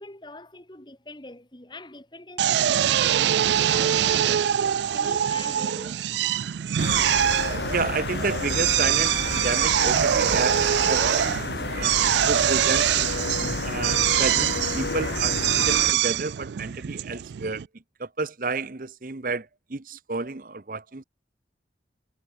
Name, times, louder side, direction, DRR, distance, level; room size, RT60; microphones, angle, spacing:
voice 1, 0.0-4.6 4.9-6.0, left 2 dB, 25° left, 1.9 m, -43 dB
Drill, 2.4-17.7, right 10 dB, 75° right, 0.4 m, -24 dB
sound 1, 6.8-15.9, left 3 dB, 65° left, 0.9 m, -31 dB
voice 2, 7.7-13.0 13.6-17.6 18.0-21.0, right 3 dB, 50° right, 0.9 m, -31 dB
head